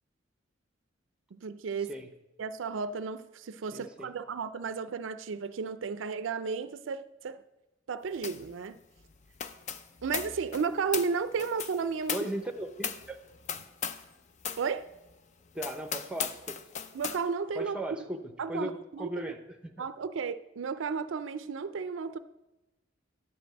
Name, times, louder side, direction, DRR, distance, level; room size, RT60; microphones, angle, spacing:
voice 1, 1.3-1.9 2.4-7.4 7.9-8.8 10.0-12.3 14.6-14.9 16.9-17.8 18.4-19.1 19.8-22.2, right 5 dB, 75° right, 0.4 m, -33 dB
voice 2, 3.7-4.1 12.1-13.2 15.5-16.6 17.5-19.9, right 1 dB, 5° right, 0.7 m, -37 dB
sound 1, 8.2-8.5 8.8-14.1 14.4-14.7 15.1-15.2 15.6-17.2, left 7 dB, 35° left, 0.5 m, -38 dB
10.5 x 5.2 x 7.7 m
head